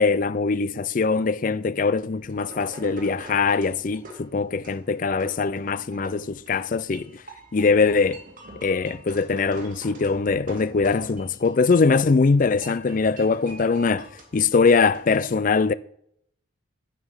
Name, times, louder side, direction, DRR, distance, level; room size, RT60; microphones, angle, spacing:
voice 1, 0.0-7.2 7.5-8.2 8.6-14.1 14.3-15.7, left 4 dB, 40° left, 0.4 m, -22 dB
sound 1, 2.1-15.0, right 1 dB, 40° right, 2.4 m, -45 dB
9.2 x 8.7 x 5.7 m
head